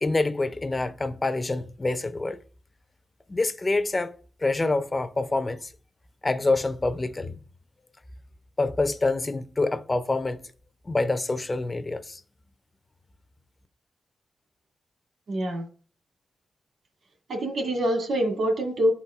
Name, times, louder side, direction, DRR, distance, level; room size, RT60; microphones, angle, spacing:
voice 1, 0.0-2.4 3.3-4.1 4.4-5.7 6.2-7.3 8.6-10.4 10.9-12.2, left 2 dB, 25° left, 0.4 m, -26 dB
voice 2, 15.3-15.6 17.3-18.9, equal, 75° right, 2.2 m, -25 dB
12.0 x 4.0 x 2.4 m
wide cardioid pair, 145°, 0 cm